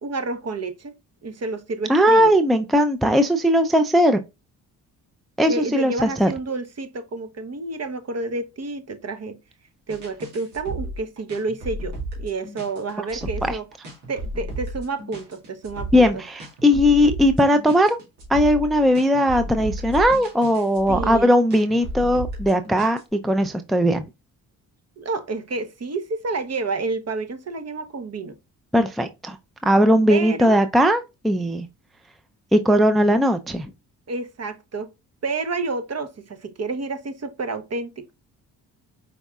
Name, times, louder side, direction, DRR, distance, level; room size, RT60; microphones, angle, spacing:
voice 1, 0.0-1.0 1.2-2.3 5.5-9.4 9.9-13.7 14.1-16.1 20.9-21.3 25.0-28.4 30.1-30.6 34.1-34.9 35.2-38.1, right 3 dB, 40° right, 0.9 m, -29 dB
voice 2, 1.9-4.2 5.4-6.3 13.1-13.6 15.9-18.0 18.3-24.1 28.7-29.4 29.6-31.7 32.5-33.7, equal, ahead, 0.5 m, -18 dB
sound 1, 9.9-23.0, right 1 dB, 85° right, 2.1 m, -33 dB
5.2 x 3.6 x 2.3 m
supercardioid pair, 50°, 40 cm